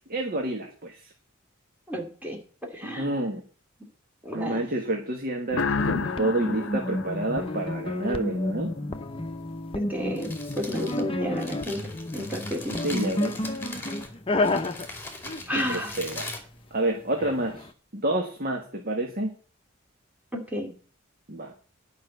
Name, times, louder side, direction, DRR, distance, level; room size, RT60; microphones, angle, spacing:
voice 1, 0.1-1.1 2.8-3.4 4.3-8.7 12.8-13.4 15.5-16.3 16.7-19.3 21.3-21.5, right 1 dB, 45° right, 3 dB, 1.5 m, -29 dB
voice 2, 1.9-3.2 4.2-4.6 9.7-10.3 10.6-11.8 12.1-12.7 15.5-16.0 20.3-20.7, equal, 10° right, 1 dB, 2.3 m, -32 dB
sound 1, 5.5-8.2, left 4 dB, 65° left, 0.7 m, -31 dB
sound 2, 5.8-16.3 17.2-17.7, left 2 dB, 25° left, 0.8 m, -31 dB
Crumpling crinkling, 9.9-17.3, left 2 dB, 10° left, 2.5 m, -41 dB
10.5 x 5.6 x 8.0 m, 0.40 s
head